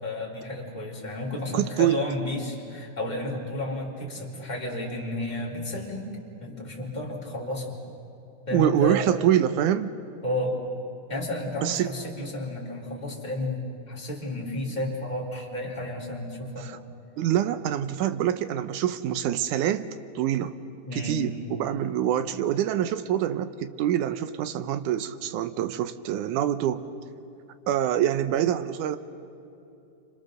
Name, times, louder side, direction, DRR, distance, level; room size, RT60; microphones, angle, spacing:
voice 1, 0.0-6.1 6.4-7.8 8.5-9.0 10.2-10.6 11.1-16.7 20.8-21.2, left 1 dB, 15° left, -4 dB, 3.6 m, -32 dB
voice 2, 1.5-2.0 8.5-9.9 11.6-11.9 16.6-16.8 17.2-19.9 20.2-20.6 20.9-21.3 21.6-26.8 27.7-29.0, right 11 dB, 85° right, 11 dB, 2.3 m, -25 dB
29.0 x 25.5 x 6.7 m, 2.8 s
omnidirectional pair, 3.5 m